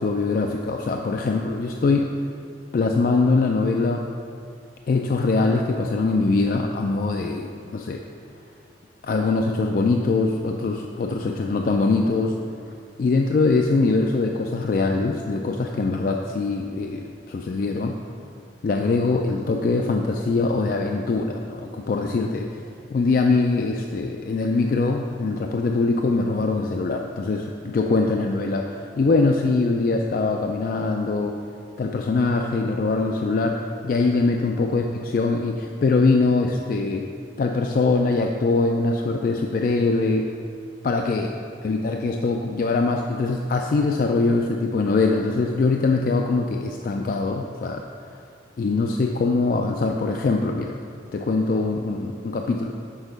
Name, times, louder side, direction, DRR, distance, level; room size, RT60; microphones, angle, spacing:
voice 1, 0.0-2.1 2.7-4.1 4.9-8.0 9.0-12.4 13.0-18.0 18.6-22.5 22.9-31.3 31.8-33.6 33.8-37.0 37.4-40.3 40.8-41.3 41.6-47.8 48.6-50.8 51.1-52.7, left 3 dB, 50° left, 2 dB, 0.3 m, -22 dB
6.3 x 4.8 x 5.1 m, 2.3 s
head